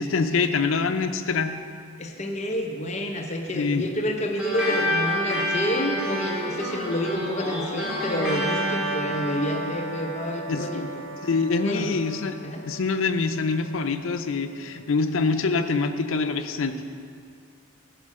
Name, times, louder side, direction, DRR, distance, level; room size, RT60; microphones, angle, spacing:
voice 1, 0.0-1.6 3.5-3.8 10.5-10.8 11.2-12.4 12.7-16.8, left 4 dB, 75° left, 7 dB, 0.5 m, -25 dB
voice 2, 2.0-10.9 11.6-12.0 12.4-12.6, equal, 35° left, 3 dB, 0.7 m, -29 dB
sound 1, 4.4-13.2, equal, 5° right, 2.7 m, -29 dB
11.0 x 5.0 x 6.4 m, 2.3 s
head